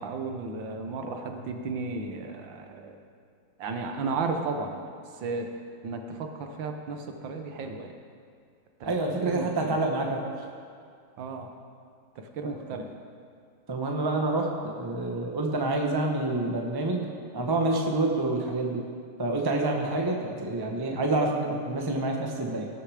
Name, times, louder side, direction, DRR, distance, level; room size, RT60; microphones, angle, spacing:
voice 1, 0.0-3.0 3.6-4.8 5.2-5.5 5.8-7.9 8.8-9.0 9.2-9.7 11.2-11.5 12.2-12.9 19.8-20.0, right 4 dB, 70° right, 5 dB, 1.6 m, -34 dB
voice 2, 8.8-10.2 12.4-12.5 13.7-18.8 19.2-22.7, right 2 dB, 20° right, 1 dB, 0.6 m, -28 dB
19.0 x 6.5 x 4.9 m, 2.2 s
omnidirectional pair, 2.3 m